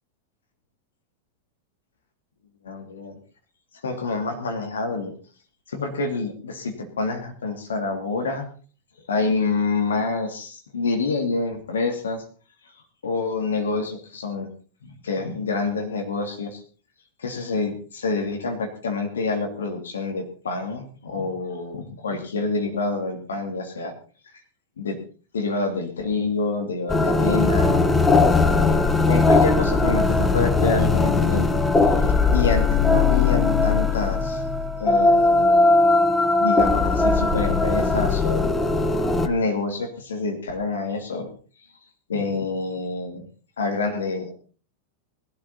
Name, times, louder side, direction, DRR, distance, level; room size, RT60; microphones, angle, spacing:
voice 1, 2.6-3.2 3.8-5.1 5.7-8.5 9.1-12.2 13.0-14.5 14.8-16.6 17.2-23.9 24.8-25.0 25.3-27.8 28.2-31.5 31.9-32.0 32.3-34.4 34.8-35.8 36.4-38.5 39.2-41.3 42.1-43.3 43.6-44.3, left 3 dB, 70° left, 4 dB, 2.7 m, -27 dB
sound 1, 26.9-39.3, left 3 dB, 10° left, 1.4 m, -19 dB
19.5 x 12.5 x 4.1 m, 0.38 s
figure-of-eight pair, 90°, 0 cm